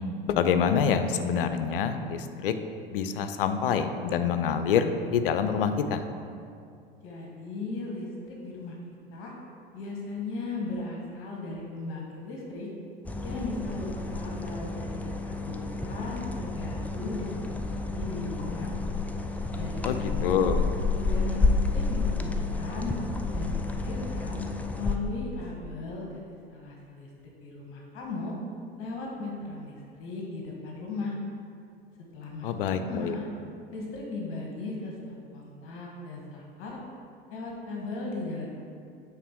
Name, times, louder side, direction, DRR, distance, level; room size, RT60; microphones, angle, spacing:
voice 1, 0.3-2.5 2.9-6.0 19.8-20.6 32.4-33.1, left 7 dB, 70° left, 9 dB, 0.6 m, -26 dB
voice 2, 7.0-8.8 9.1-9.3 9.7-12.7 13.2-18.7 19.6-20.5 21.0-22.9 23.3-24.4 24.7-27.1 27.4-28.3 28.8-31.2 32.1-32.5 32.8-33.3 33.7-36.8 37.3-38.5, left 3 dB, 45° left, -2 dB, 1.4 m, -37 dB
sound 1, 13.0-25.0, left 3 dB, 5° left, 0.4 m, -30 dB
9.0 x 3.9 x 4.6 m, 2.4 s
figure-of-eight pair, 80°, 29 cm